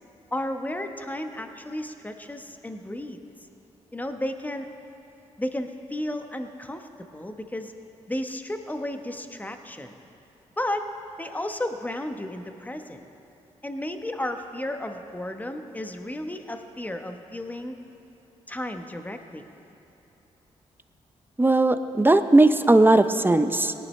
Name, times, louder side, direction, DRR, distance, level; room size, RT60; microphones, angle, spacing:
voice 1, 0.3-3.2 3.9-4.7 5.4-7.7 8.1-10.0 10.6-10.9 11.2-13.0 13.6-17.7 18.5-19.5, left 1 dB, 10° left, 6 dB, 1.0 m, -33 dB
voice 2, 21.4-23.7, right 2 dB, 15° right, 10 dB, 0.7 m, -18 dB
18.0 x 11.5 x 3.2 m, 2.8 s
supercardioid pair, 50°, 13 cm